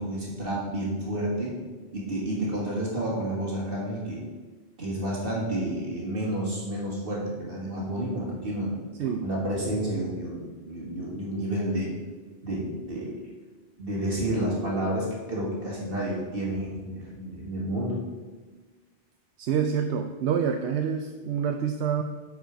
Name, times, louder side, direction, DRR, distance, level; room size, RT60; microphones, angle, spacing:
voice 1, 0.0-1.6 1.9-4.2 4.8-8.8 9.2-11.9 12.4-13.2 13.8-18.0, right 1 dB, 60° right, -4 dB, 1.9 m, -30 dB
voice 2, 19.4-22.0, right 7 dB, 85° right, 6 dB, 0.9 m, -27 dB
8.9 x 4.9 x 5.0 m, 1.3 s
omnidirectional pair, 1.1 m